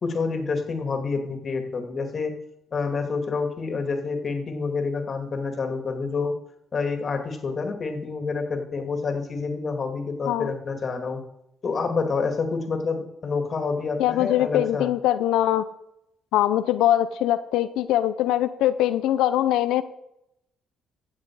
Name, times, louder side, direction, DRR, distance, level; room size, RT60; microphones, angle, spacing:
voice 1, 0.0-2.3 2.7-6.3 6.7-11.2 11.6-14.9, left 4 dB, 45° left, 5 dB, 2.4 m, -28 dB
voice 2, 14.0-15.7 16.3-19.8, left 12 dB, 85° left, 12 dB, 0.6 m, -22 dB
15.5 x 7.5 x 4.8 m, 0.80 s
cardioid pair, 75°, 0 cm